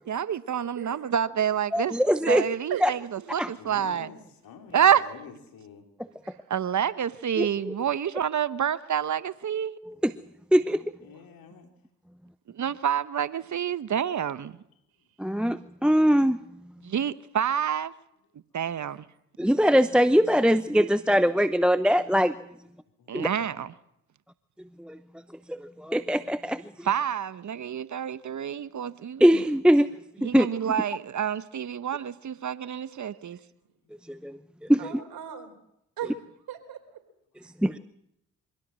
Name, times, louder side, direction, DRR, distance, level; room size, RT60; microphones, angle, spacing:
voice 1, 0.1-2.0 2.3-3.0 3.3-4.1 4.7-5.0 6.5-9.8 12.5-14.6 16.8-17.9 18.5-19.0 23.1-23.7 26.8-29.2 30.2-33.4, right 9 dB, 50° right, 1.0 m, -28 dB
voice 2, 1.7-2.4 2.8-2.9 3.4-3.5 7.4-7.8 9.8-10.1 10.5-10.8 15.2-16.4 19.4-22.3 23.1-23.3 24.8-25.0 25.5-26.9 29.2-29.9 30.2-30.5 34.1-34.4 34.7-35.0 37.6-37.8, equal, 5° right, 0.8 m, -22 dB
voice 3, 3.5-5.9 11.0-11.7 14.9-15.0 23.0-23.6 33.2-33.3, left 6 dB, 70° left, 4.0 m, -47 dB
voice 4, 34.8-35.5 36.0-36.2 36.5-37.0, right 8 dB, 75° right, 3.8 m, -37 dB
24.5 x 16.0 x 7.5 m
supercardioid pair, 50°, 36 cm